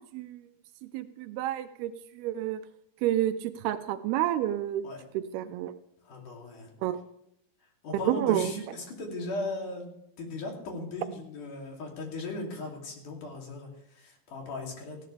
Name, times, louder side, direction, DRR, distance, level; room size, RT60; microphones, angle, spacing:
voice 1, 0.9-1.9 2.2-2.6 3.0-4.8 5.1-5.7 6.8-7.0 8.1-8.5, right 12 dB, 85° right, 10 dB, 2.6 m, -29 dB
voice 2, 6.0-6.7 7.8-9.9 10.2-15.0, left 2 dB, 55° left, 0 dB, 4.3 m, -37 dB
18.5 x 15.5 x 3.4 m, 0.76 s
omnidirectional pair, 4.4 m